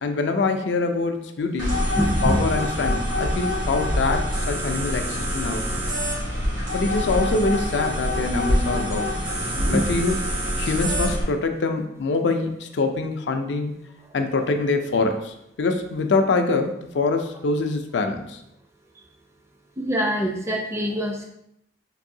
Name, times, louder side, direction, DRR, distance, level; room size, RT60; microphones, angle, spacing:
voice 1, 0.0-1.8 2.2-5.8 6.7-9.1 9.7-10.2 10.6-13.7 14.1-18.4, left 3 dB, 70° left, 6 dB, 0.4 m, -24 dB
sound 1, 1.6-11.2, equal, 85° right, 1.4 m, -25 dB
voice 2, 2.0-2.4 9.4-9.9 19.8-21.2, equal, 15° right, 2 dB, 0.4 m, -24 dB
4.6 x 2.6 x 2.7 m, 0.78 s
head